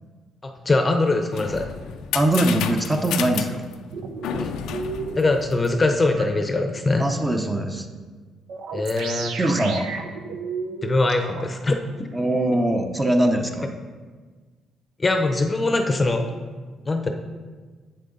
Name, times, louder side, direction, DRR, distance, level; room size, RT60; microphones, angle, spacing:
voice 1, 0.4-1.7 4.4-4.5 5.2-7.1 8.7-9.4 10.8-11.8 15.0-16.3 16.9-17.1, left 2 dB, 25° left, 5 dB, 0.7 m, -22 dB
sound 1, 1.0-6.1, left 8 dB, 85° left, 0.4 m, -32 dB
voice 2, 2.1-3.6 7.0-7.9 9.4-9.9 12.1-13.7, right 1 dB, 15° right, 4 dB, 0.7 m, -22 dB
sound 2, 3.9-5.3 6.2-6.3 8.5-11.4, right 5 dB, 80° right, 0.7 m, -32 dB
7.8 x 6.6 x 3.9 m, 1.4 s
cardioid pair, 95°, 0 cm